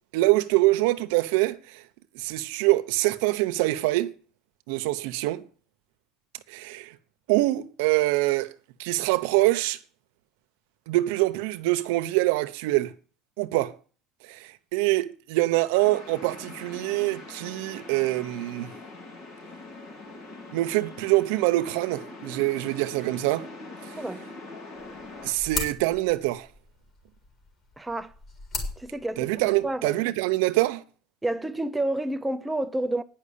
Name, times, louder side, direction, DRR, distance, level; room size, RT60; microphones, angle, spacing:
voice 1, 0.1-1.8 2.1-4.2 4.7-5.4 6.5-7.0 7.3-8.5 8.8-9.8 10.9-12.9 13.4-13.7 14.3-18.7 20.5-23.5 23.8-23.9 25.2-26.5 29.2-30.8, right 19 dB, 85° right, 0.8 m, -25 dB
sound 1, 15.8-25.3, left 2 dB, 65° left, 3.6 m, -43 dB
sound 2, 24.8-29.8, left 3 dB, 35° left, 3.9 m, -38 dB
voice 2, 27.8-28.1 28.8-29.4 29.6-30.0 31.2-33.0, right 1 dB, 5° right, 0.5 m, -29 dB
9.9 x 5.9 x 8.3 m
cardioid pair, 155°, 0 cm